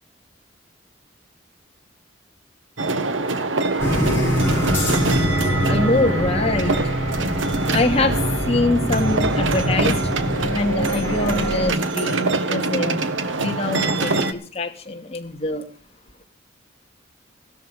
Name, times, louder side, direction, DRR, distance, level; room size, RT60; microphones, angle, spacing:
sound 1, 2.8-14.3, right 2 dB, 85° right, 1.4 m, -24 dB
sound 2, 3.8-11.7, equal, 15° left, 6.0 m, -24 dB
voice 1, 5.7-6.8 7.6-8.2 8.5-10.0 10.5-13.0 13.3-15.6, left 2 dB, 35° left, 3 dB, 2.3 m, -24 dB
15.5 x 13.0 x 5.3 m, 0.40 s
head